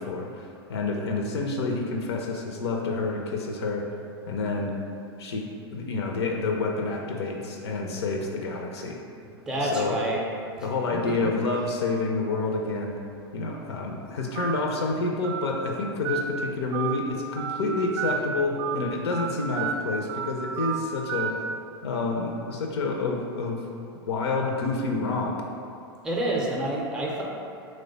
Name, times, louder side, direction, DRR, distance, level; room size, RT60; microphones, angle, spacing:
voice 1, 0.0-3.9 4.3-4.7 5.2-5.5 5.7-9.0 9.6-10.0 10.6-13.0 13.3-21.4 21.8-23.7 24.1-25.4, left 3 dB, 75° left, 1 dB, 0.4 m, -28 dB
voice 2, 9.5-10.2 10.6-10.7 26.0-27.2, right 1 dB, 5° right, -3 dB, 0.5 m, -27 dB
Telephone, 14.4-14.5 15.2-15.4 16.0-16.2 16.7-16.9 17.4-17.6 18.0-18.2 18.6-18.8 19.1-19.3 19.6-19.7 20.1-20.3 20.6-20.8 21.1-21.3, right 10 dB, 65° right, 0.4 m, -30 dB
3.0 x 2.1 x 3.9 m, 2.5 s
hypercardioid pair, 95°, 14 cm